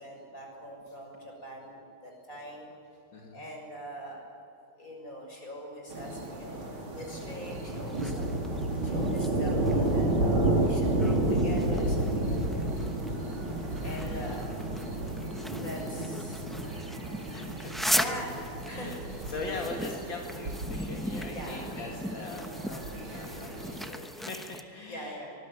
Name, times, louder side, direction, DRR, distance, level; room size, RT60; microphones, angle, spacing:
voice 1, 0.0-2.7 3.3-4.2 4.8-8.3 8.8-12.7 13.8-14.5 15.5-16.8 17.9-18.9 21.3-21.8 24.9-25.3, equal, 40° left, 1 dB, 7.0 m, -42 dB
voice 2, 3.1-3.4 13.0-14.3 17.3-17.9 18.7-19.0 19.3-25.2, left 3 dB, 70° left, 1 dB, 2.7 m, -41 dB
sound 1, 5.9-23.9, right 1 dB, 85° right, 4.6 m, -31 dB
sound 2, 7.2-24.6, equal, ahead, 0.4 m, -39 dB
24.5 x 20.5 x 9.3 m, 2.6 s
omnidirectional pair, 2.2 m